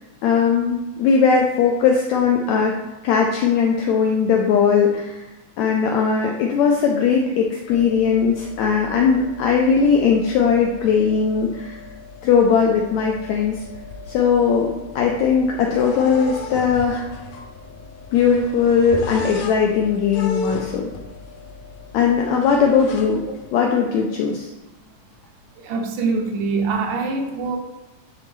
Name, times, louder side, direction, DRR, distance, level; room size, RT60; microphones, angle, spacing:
voice 1, 0.2-2.7 3.0-5.2 5.6-11.8 12.2-13.6 14.1-17.1 18.1-20.9 21.9-23.2 23.5-24.5, left 6 dB, 90° left, 0 dB, 1.6 m, -19 dB
sound 1, 7.7-23.5, left 4 dB, 75° left, 2.0 m, -36 dB
voice 2, 25.6-27.6, right 4 dB, 75° right, 3 dB, 2.1 m, -24 dB
9.6 x 4.1 x 3.3 m, 1.1 s
omnidirectional pair, 3.9 m